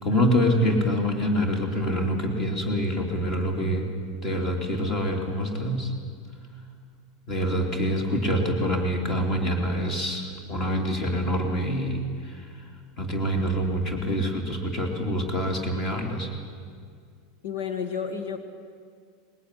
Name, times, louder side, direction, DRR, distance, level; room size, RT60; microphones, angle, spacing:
voice 1, 0.0-3.9 4.2-5.9 7.3-12.5 13.0-16.3, equal, 25° left, 3 dB, 3.1 m, -26 dB
voice 2, 17.4-18.4, left 7 dB, 70° left, 8 dB, 1.5 m, -31 dB
20.5 x 19.5 x 9.9 m, 2.1 s
supercardioid pair, 170°, 0 cm